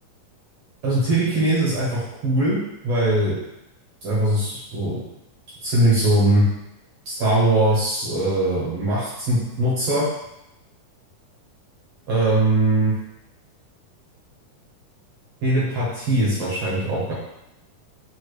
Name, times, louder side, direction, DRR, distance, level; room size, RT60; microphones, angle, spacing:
voice 1, 0.8-3.4 4.0-5.0 5.6-6.4 7.0-10.0 12.1-12.9 15.4-17.1, right 1 dB, 65° right, -7 dB, 1.6 m, -21 dB
6.6 x 2.5 x 3.2 m, 0.87 s
omnidirectional pair, 4.4 m